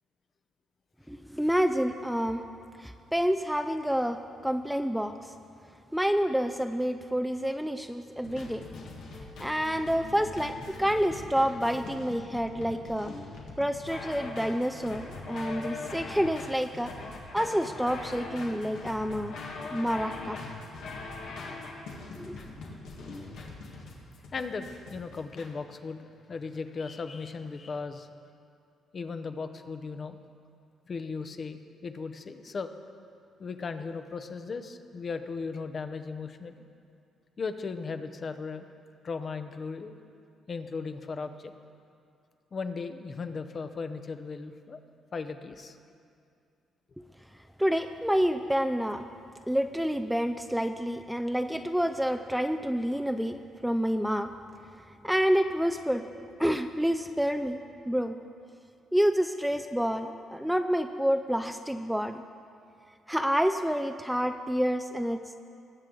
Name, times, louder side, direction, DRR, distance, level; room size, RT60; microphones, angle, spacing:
voice 1, 1.1-2.4 2.8-5.3 5.9-8.7 9.4-13.1 13.6-16.9 17.3-19.4 19.7-20.4 22.2-22.4 47.0-47.1 47.6-49.0 49.5-54.3 55.0-56.1 56.4-58.2 58.9-62.2 63.1-65.4, equal, ahead, 7 dB, 0.4 m, -28 dB
sound 1, 8.2-25.5, left 3 dB, 85° left, 1.7 m, -42 dB
voice 2, 24.3-24.6 24.9-28.1 28.9-30.2 30.9-32.7 33.4-36.6 37.4-38.7 39.0-40.0 40.5-41.5 42.5-44.8 45.1-45.8, left 4 dB, 45° left, 9 dB, 0.7 m, -37 dB
20.0 x 7.5 x 3.9 m, 2.4 s
cardioid pair, 90°, 0 cm